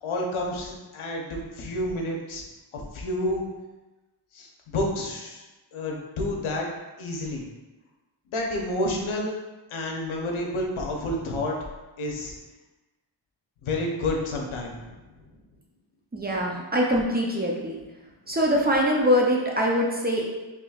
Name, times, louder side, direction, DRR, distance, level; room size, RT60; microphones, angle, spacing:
voice 1, 0.0-2.4 2.7-3.4 4.3-5.4 5.7-6.7 7.0-7.4 8.3-9.3 9.7-11.5 12.0-12.3 13.6-14.9 18.3-18.4, left 1 dB, 85° left, 0 dB, 0.8 m, -29 dB
voice 2, 16.1-17.8 18.3-20.3, equal, 20° right, -2 dB, 0.5 m, -23 dB
5.0 x 3.0 x 2.3 m, 1.1 s
wide cardioid pair, 130°, 47 cm